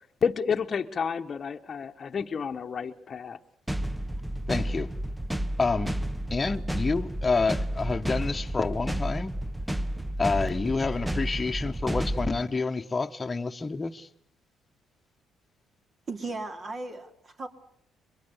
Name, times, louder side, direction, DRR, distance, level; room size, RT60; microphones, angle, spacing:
voice 1, 0.2-3.4, left 6 dB, 45° left, 1.1 m, -30 dB
sound 1, 3.7-12.4, right 1 dB, 10° right, 1.0 m, -31 dB
voice 2, 4.5-4.9 5.6-5.9 6.3-9.3 10.2-14.1, left 4 dB, 25° left, 1.2 m, -28 dB
voice 3, 16.1-17.5, right 3 dB, 40° right, 3.0 m, -36 dB
22.5 x 22.5 x 8.2 m
supercardioid pair, 75°, 0 cm